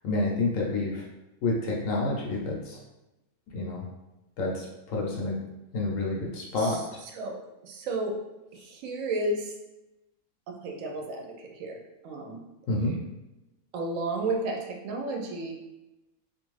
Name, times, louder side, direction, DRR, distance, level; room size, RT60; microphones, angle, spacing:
voice 1, 0.0-1.0 1.4-2.8 3.5-3.9 4.4-5.4 5.7-6.8 12.7-12.9, left 2 dB, 70° left, -2 dB, 0.9 m, -28 dB
voice 2, 6.6-8.2 8.5-9.5 10.5-11.8 12.0-12.4 13.7-15.5, right 2 dB, 70° right, 2 dB, 0.9 m, -33 dB
2.5 x 2.5 x 3.1 m, 0.99 s
omnidirectional pair, 1.5 m